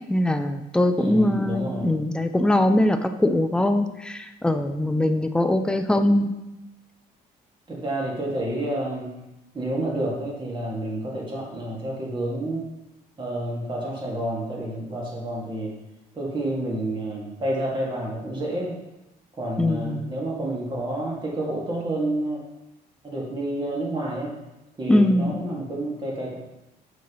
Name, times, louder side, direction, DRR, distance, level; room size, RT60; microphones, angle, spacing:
voice 1, 0.1-6.3 19.6-20.1 24.9-25.3, left 1 dB, 5° left, 7 dB, 0.4 m, -22 dB
voice 2, 1.0-2.0 7.7-9.1 9.5-12.7 13.2-15.8 16.1-18.7 19.4-22.4 23.0-24.3 24.8-26.3, right 1 dB, 30° right, -3 dB, 2.0 m, -29 dB
7.4 x 5.5 x 3.1 m, 0.96 s
cardioid pair, 110°, 17 cm